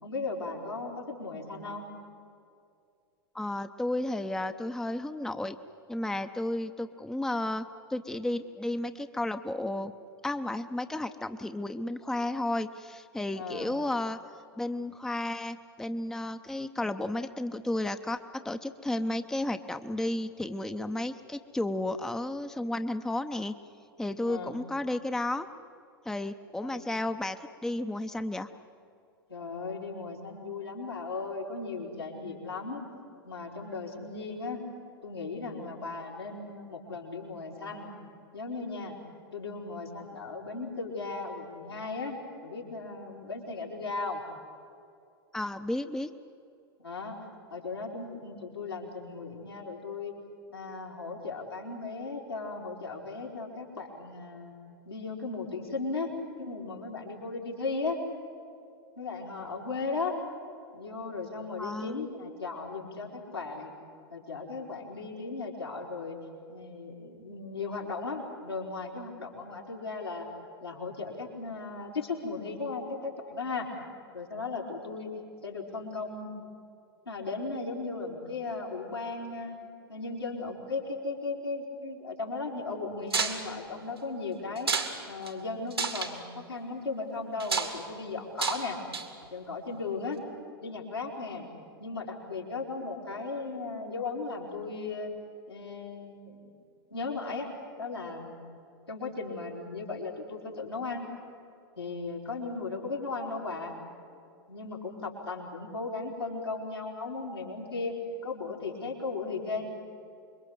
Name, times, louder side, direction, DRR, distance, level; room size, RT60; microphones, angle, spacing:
voice 1, 0.0-1.9 13.3-13.7 24.2-24.6 26.6-26.9 29.3-32.8 33.2-34.6 35.0-37.9 38.3-39.0 39.3-44.2 46.8-47.2 47.5-50.1 50.5-54.5 54.9-56.1 56.4-58.0 59.0-60.1 60.7-63.7 64.1-66.2 66.5-70.3 70.6-73.7 74.1-75.1 75.4-76.3 77.1-79.6 79.9-88.8 89.3-90.2 90.6-91.5 91.8-95.1 95.5-96.5 96.9-97.5 97.8-98.4 98.9-101.1 101.8-103.7 104.5-107.9 108.2-109.7, left 3 dB, 85° left, -2 dB, 4.5 m, -36 dB
voice 2, 3.3-5.6 5.9-9.9 10.2-14.2 14.6-23.5 24.0-25.5 26.1-28.5 45.3-46.1 61.6-62.1, left 1 dB, 5° left, 9 dB, 0.8 m, -33 dB
sound 1, 83.1-83.4 84.6-84.9 85.3-85.4 85.7-86.1 87.4-87.7 88.4-88.6 88.9-89.2, right 5 dB, 80° right, 2.4 m, -29 dB
26.5 x 22.5 x 7.9 m, 2.5 s
figure-of-eight pair, 90°, 13 cm